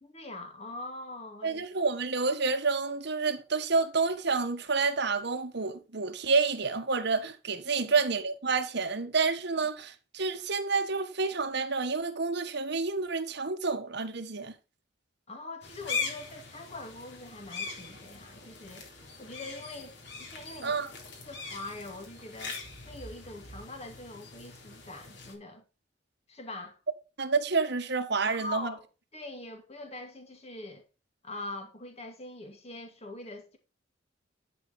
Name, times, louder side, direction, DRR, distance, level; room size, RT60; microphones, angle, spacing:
voice 1, 0.0-1.7 7.8-7.9 15.3-18.9 19.2-20.9 21.2-22.6 22.9-25.6 26.3-26.8 28.3-28.9 29.1-30.8 31.2-33.6, left 2 dB, 35° left, 2.5 m, -43 dB
voice 2, 1.4-14.5 20.6-20.9 27.2-28.7, right 4 dB, 60° right, 1.4 m, -29 dB
sound 1, 15.6-25.3, left 5 dB, 65° left, 3.6 m, -41 dB
11.5 x 5.7 x 4.2 m
head